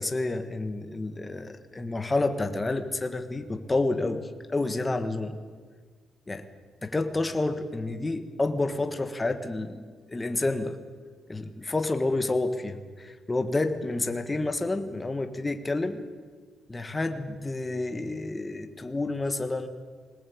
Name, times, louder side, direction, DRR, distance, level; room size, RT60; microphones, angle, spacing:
voice 1, 0.0-5.4 6.3-6.5 6.8-9.8 10.1-10.8 11.3-16.0 16.7-19.7, left 2 dB, 15° left, 7 dB, 1.6 m, -29 dB
22.0 x 19.0 x 8.7 m, 1.6 s
cardioid pair, 120°, 0 cm